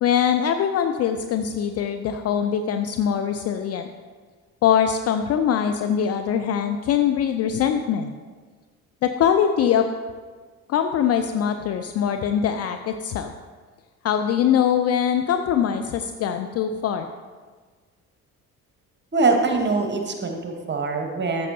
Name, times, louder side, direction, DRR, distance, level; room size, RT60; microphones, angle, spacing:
voice 1, 0.0-3.9 4.6-8.1 9.0-9.9 10.7-13.3 14.0-17.1, left 8 dB, 35° left, 7 dB, 0.4 m, -22 dB
voice 2, 19.1-21.5, right 3 dB, 25° right, 3 dB, 1.2 m, -23 dB
13.0 x 6.6 x 2.8 m, 1.5 s
figure-of-eight pair, 45°, 44 cm